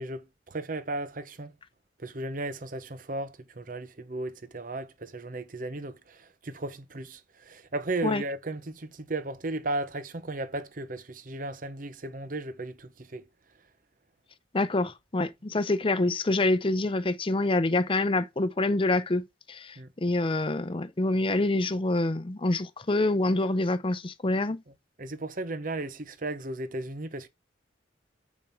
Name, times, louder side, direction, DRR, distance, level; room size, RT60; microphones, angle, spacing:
voice 1, 0.0-1.5 2.0-13.3 19.8-19.9 25.0-27.3, right 2 dB, 50° right, 0.8 m, -35 dB
voice 2, 14.5-24.6, left 2 dB, 30° left, 0.6 m, -26 dB
8.5 x 5.2 x 4.5 m
head